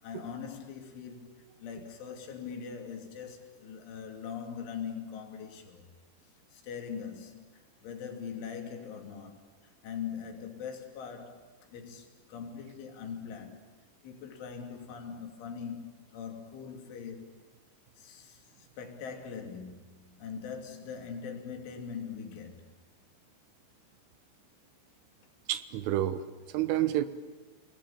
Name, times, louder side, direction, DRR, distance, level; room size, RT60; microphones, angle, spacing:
voice 1, 0.0-5.9 6.5-11.4 11.7-13.6 14.0-17.5 18.0-22.7, left 7 dB, 75° left, 5.2 m, -42 dB
voice 2, 25.5-27.1, right 13 dB, 90° right, 3.7 m, -29 dB
29.5 x 20.0 x 9.0 m
omnidirectional pair, 5.6 m